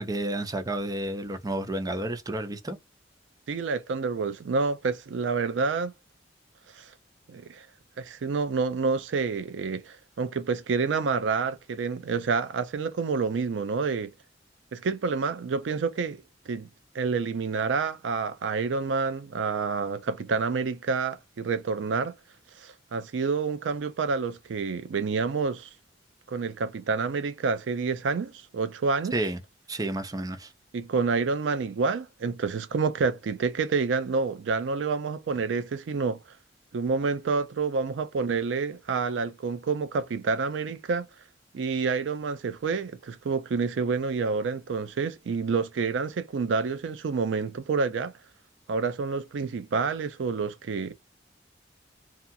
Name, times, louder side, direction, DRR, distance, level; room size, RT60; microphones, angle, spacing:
voice 1, 0.0-2.8 29.1-29.4 29.7-30.5, right 1 dB, 20° right, 0.6 m, -31 dB
voice 2, 3.5-5.9 6.7-6.9 7.3-7.7 8.0-14.1 14.7-16.7 16.9-22.1 22.6-25.7 26.3-29.1 30.7-36.2 36.7-41.1 41.5-48.1 48.7-50.9, right 4 dB, 80° right, 0.4 m, -28 dB
2.8 x 2.4 x 2.3 m
head